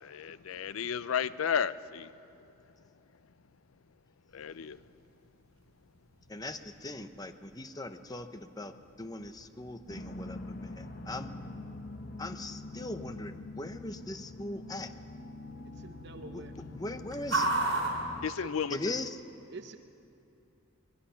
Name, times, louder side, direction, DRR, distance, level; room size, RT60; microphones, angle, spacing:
voice 1, 0.0-2.1 4.3-4.8 18.2-19.0, left 7 dB, 85° left, 16 dB, 0.5 m, -33 dB
sound 1, 4.3-19.1, right 2 dB, 75° right, 4.3 m, -40 dB
voice 2, 6.3-8.7 9.0-11.3 12.2-14.9 16.3-16.4 16.7-17.5 18.7-19.2, left 2 dB, 20° left, 9 dB, 0.8 m, -40 dB
sound 2, 9.9-18.3, left 2 dB, 45° left, 1.1 m, -44 dB
voice 3, 15.7-16.6 18.4-18.5 19.5-19.8, right 3 dB, 55° right, 7 dB, 0.8 m, -46 dB
22.0 x 21.5 x 5.8 m, 2.7 s
head